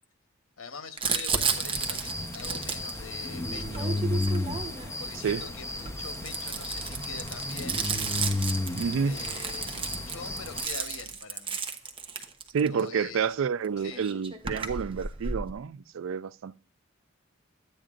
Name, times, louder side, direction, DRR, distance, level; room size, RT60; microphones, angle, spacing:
voice 1, 0.6-4.0 5.0-7.8 9.0-11.6 12.7-13.3 13.8-14.1, left 5 dB, 90° left, 1.1 m, -44 dB
Crumpling crinkling, 1.0-5.0 5.7-12.8 13.6-13.7 13.9-15.5, right 5 dB, 25° right, 0.9 m, -33 dB
sound 1, 1.5-10.6, left 2 dB, 15° left, 0.9 m, -33 dB
sound 2, 5.2-11.2, right 4 dB, 50° left, 4.0 m, -55 dB
voice 2, 8.8-9.2 12.5-16.6, right 6 dB, 70° right, 0.4 m, -29 dB
11.5 x 8.9 x 2.5 m
head